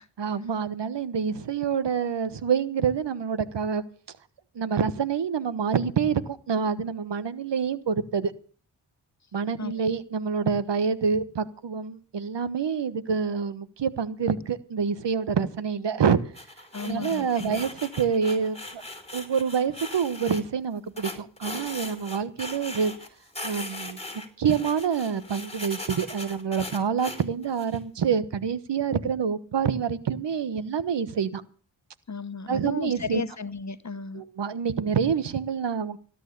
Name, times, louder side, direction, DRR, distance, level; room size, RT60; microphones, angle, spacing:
voice 1, 0.2-3.8 4.5-8.3 9.3-16.2 16.8-18.8 19.1-22.9 23.4-24.0 24.4-31.4 32.5-33.2 34.1-36.0, right 6 dB, 60° right, 15 dB, 1.3 m, -27 dB
sound 1, 16.3-20.4 21.0-23.1 23.3-27.8, left 2 dB, 15° left, 4.5 m, -39 dB
voice 2, 16.7-17.6 32.1-34.2, left 5 dB, 35° left, 13 dB, 1.4 m, -35 dB
17.5 x 9.2 x 6.8 m, 0.39 s
supercardioid pair, 45°, 47 cm